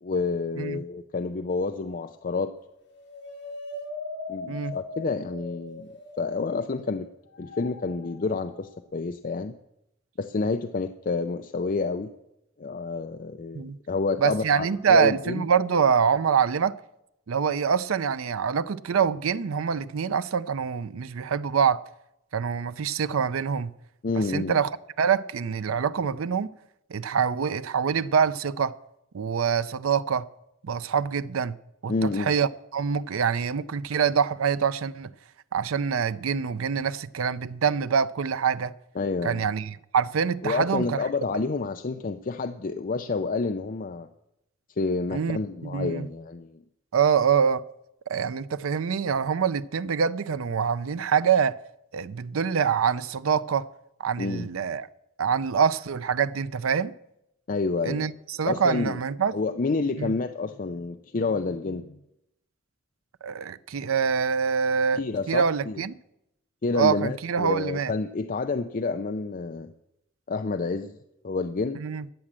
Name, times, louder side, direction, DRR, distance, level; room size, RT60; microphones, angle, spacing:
voice 1, 0.0-2.5 4.3-5.9 6.2-7.1 7.4-9.5 10.2-12.1 12.6-15.5 24.0-24.6 31.9-32.3 39.0-39.5 40.4-44.1 44.8-46.6 54.2-54.5 57.5-58.1 58.5-59.0 59.3-62.0 64.9-65.8 66.6-69.7 70.3-71.0 71.2-71.8, left 3 dB, 40° left, 0.5 m, -29 dB
sound 1, 1.7-2.3 2.7-6.8 7.3-8.6, left 3 dB, 60° left, 3.4 m, -40 dB
voice 2, 14.2-16.7 17.3-21.8 22.3-23.7 24.2-24.7 25.0-26.5 26.9-28.8 29.1-30.3 30.6-31.6 31.8-35.1 35.5-38.7 39.2-41.0 45.1-46.1 46.9-47.6 48.1-51.6 51.9-53.7 54.0-54.9 55.2-56.9 57.8-59.3 60.0-60.1 63.2-65.0 65.3-65.9 66.7-67.9 71.8-72.1, right 6 dB, 90° right, 0.5 m, -25 dB
13.0 x 8.6 x 7.5 m
head